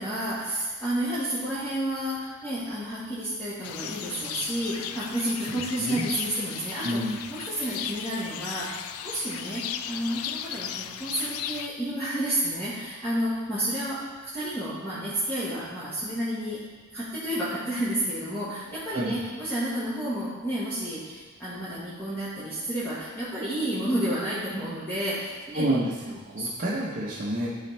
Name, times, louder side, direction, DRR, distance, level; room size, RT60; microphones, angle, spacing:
voice 1, 0.0-7.0 7.3-16.6 16.9-25.7 26.4-26.5, right 1 dB, 10° left, -13 dB, 1.5 m, -31 dB
sound 1, 3.6-11.7, left 9 dB, 70° left, 0.3 m, -36 dB
voice 2, 5.5-6.1 6.8-7.2 18.9-19.2 25.5-27.5, right 1 dB, 40° right, -6 dB, 0.9 m, -29 dB
12.0 x 4.2 x 3.3 m, 1.4 s
head